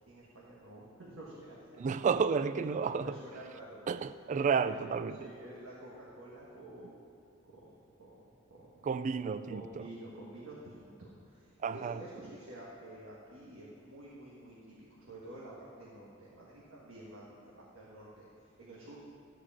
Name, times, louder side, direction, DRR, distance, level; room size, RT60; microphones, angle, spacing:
voice 1, 0.1-1.9 3.0-3.8 4.3-4.7 5.2-7.0 7.5-7.7 8.0-8.1 8.5-8.9 9.5-19.0, right 1 dB, 75° right, -6 dB, 1.7 m, -50 dB
voice 2, 1.8-3.2 3.9-5.3 8.8-9.9 11.6-12.0, right 5 dB, 35° right, 13 dB, 0.3 m, -31 dB
13.0 x 4.9 x 7.3 m, 2.4 s
head